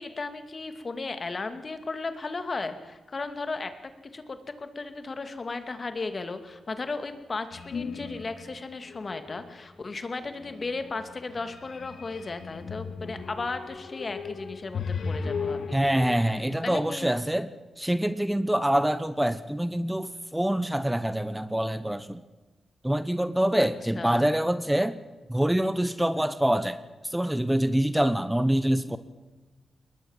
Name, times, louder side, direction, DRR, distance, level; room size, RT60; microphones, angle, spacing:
voice 1, 0.0-3.7 4.1-15.8 16.6-17.1 23.6-23.7 24.0-24.3, left 3 dB, 45° left, 9 dB, 2.5 m, -35 dB
sound 1, 7.5-8.5 8.9-9.5 10.2-16.2, left 5 dB, 70° left, 2.1 m, -36 dB
voice 2, 15.7-22.2 22.8-25.0 25.3-29.0, right 1 dB, 10° right, 13 dB, 1.1 m, -25 dB
21.5 x 19.5 x 7.4 m, 1.2 s
cardioid pair, 55°, 0 cm